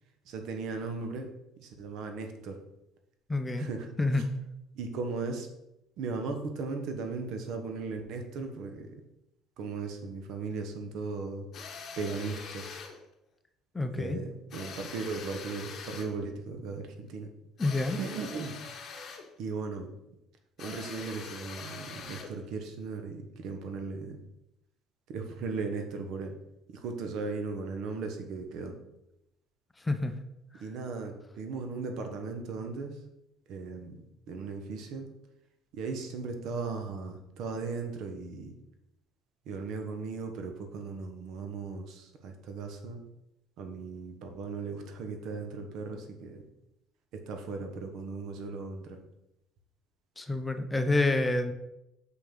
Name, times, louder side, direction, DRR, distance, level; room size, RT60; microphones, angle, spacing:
voice 1, 0.2-1.3 1.6-2.6 3.6-3.9 4.7-5.5 6.0-9.0 9.6-11.5 12.0-12.8 13.9-17.3 18.0-18.6 19.4-19.9 20.6-24.2 25.1-26.4 26.7-28.7 30.6-33.0 33.5-35.1 35.7-38.5 39.4-43.0 43.6-46.4 47.1-49.0, right 4 dB, 70° right, 5 dB, 1.2 m, -37 dB
voice 2, 3.3-3.7 4.0-4.2 13.7-14.2 17.6-18.0 29.8-30.1 50.2-51.5, left 2 dB, 15° left, 8 dB, 0.6 m, -28 dB
sound 1, 11.5-13.0 14.5-16.2 17.6-19.3 20.6-22.4, left 5 dB, 50° left, 1.2 m, -43 dB
6.0 x 5.7 x 3.8 m, 0.87 s
cardioid pair, 100°, 0 cm